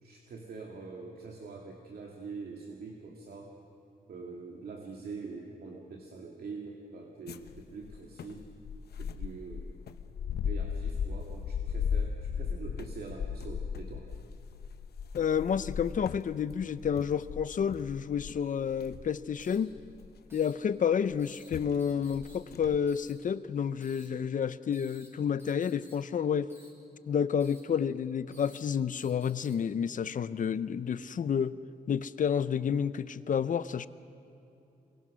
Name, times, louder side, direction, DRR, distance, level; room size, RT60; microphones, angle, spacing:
voice 1, 0.0-3.6 4.1-8.5 9.0-9.7 10.4-14.1, right 4 dB, 70° right, 0 dB, 2.3 m, -44 dB
sound 1, 7.3-20.4 21.1-21.2 21.5-21.8 22.1-22.8, left 7 dB, 80° left, 0.9 m, -37 dB
voice 2, 15.1-19.8 20.3-26.5 27.1-31.6 31.9-33.9, left 7 dB, 55° left, 15 dB, 0.7 m, -30 dB
sound 2, 17.6-17.7 19.4-19.6 20.3-20.5 21.2-21.5 21.8-22.4 22.9-23.1 23.8-24.1 24.7-25.1 25.4-25.9 26.5-26.7 27.4-27.6 28.3-28.6 29.0-29.5, equal, 15° right, 6.3 m, -57 dB
28.0 x 23.5 x 6.3 m, 2.8 s
wide cardioid pair, 115°, 16 cm